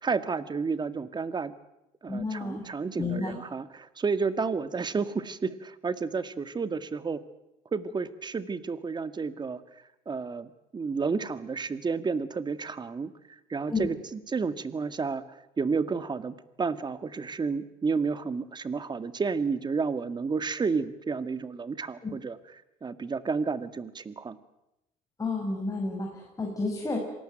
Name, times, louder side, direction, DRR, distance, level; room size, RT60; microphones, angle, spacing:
voice 1, 0.0-1.5 2.0-7.2 7.7-9.6 10.1-13.1 13.5-15.2 15.6-22.4 22.8-24.4, right 5 dB, 25° right, 12 dB, 1.9 m, -31 dB
voice 2, 2.1-2.7 3.0-3.3 13.7-13.9 22.0-22.1 25.2-27.0, left 3 dB, 20° left, 0 dB, 6.6 m, -31 dB
26.0 x 19.0 x 9.1 m, 0.89 s
supercardioid pair, 85°, 16 cm